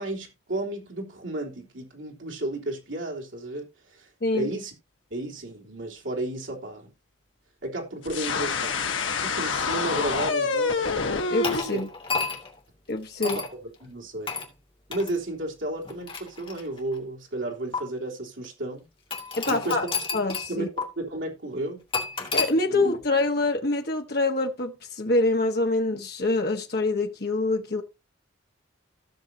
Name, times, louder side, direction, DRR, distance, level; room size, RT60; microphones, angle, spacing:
voice 1, 0.0-3.7 3.9-4.1 4.3-4.7 5.1-6.9 7.6-9.0 9.2-10.8 11.7-11.8 13.2-13.4 13.8-14.3 14.9-18.9 19.5-19.8 20.5-21.8 22.2-22.3 22.7-22.8, right 2 dB, 70° right, 3.6 m, -33 dB
sound 1, 8.0-11.6, left 4 dB, 75° left, 1.2 m, -26 dB
voice 2, 11.3-11.9 12.9-13.4 19.4-19.8 20.1-20.7 22.3-27.8, left 2 dB, 55° left, 1.2 m, -25 dB
sound 2, 11.4-12.6 13.2-13.5 14.3-14.5 14.9-15.1 15.8-17.0 17.7-17.8 19.1-20.5 20.8-20.9 21.9-22.5, left 4 dB, 25° left, 2.2 m, -30 dB
16.0 x 6.5 x 2.8 m
head